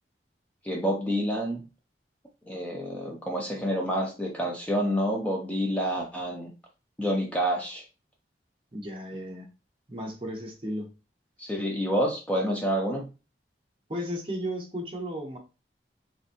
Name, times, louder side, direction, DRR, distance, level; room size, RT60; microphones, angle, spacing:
voice 1, 0.6-1.6 2.5-6.5 7.0-7.8 11.4-13.1, equal, 10° left, -1 dB, 0.4 m, -28 dB
voice 2, 8.7-9.5 9.9-10.9 13.9-15.4, equal, 30° right, 0 dB, 0.7 m, -34 dB
3.3 x 2.9 x 2.5 m, 0.30 s
head